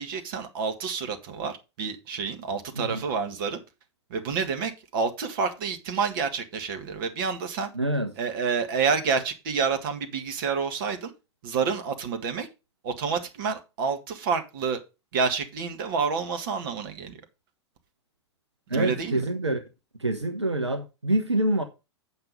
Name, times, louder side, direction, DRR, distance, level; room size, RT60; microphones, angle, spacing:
voice 1, 0.0-3.6 4.1-7.7 8.2-11.1 11.4-12.5 12.8-14.8 15.1-17.2 18.7-19.2, right 5 dB, 50° right, 1.7 m, -28 dB
voice 2, 7.7-8.1 18.7-19.6 20.0-21.6, right 1 dB, 85° right, 1.0 m, -26 dB
7.9 x 6.0 x 5.4 m
figure-of-eight pair, 100°, 14 cm